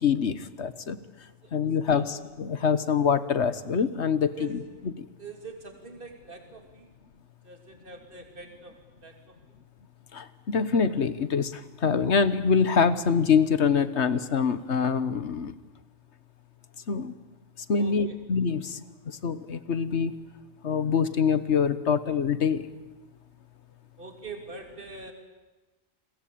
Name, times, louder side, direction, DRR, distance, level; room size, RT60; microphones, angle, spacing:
voice 1, 0.0-1.0 1.5-4.6 5.0-5.1 10.1-15.5 16.9-17.1 17.7-18.8 19.1-20.1 20.6-22.7, left 6 dB, 60° left, 13 dB, 1.5 m, -25 dB
voice 2, 1.4-2.1 4.2-4.6 5.2-6.9 7.4-9.4 17.8-18.2 24.0-25.1, right 4 dB, 40° right, 5 dB, 3.2 m, -44 dB
30.0 x 22.0 x 8.6 m, 1.2 s
omnidirectional pair, 1.3 m